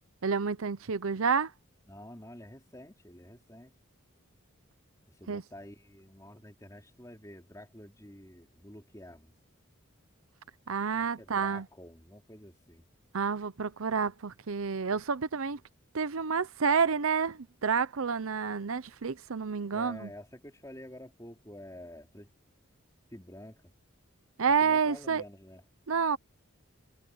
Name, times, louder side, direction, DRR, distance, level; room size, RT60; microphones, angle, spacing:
voice 1, 0.2-1.5 5.3-5.4 10.7-11.7 13.1-15.6 15.9-20.1 24.4-25.2 25.9-26.2, right 5 dB, 80° right, 0.7 m, -29 dB
voice 2, 1.9-3.7 5.1-9.3 10.9-12.9 19.7-22.3 23.1-23.6 24.6-25.6, left 1 dB, 15° left, 4.3 m, -49 dB
head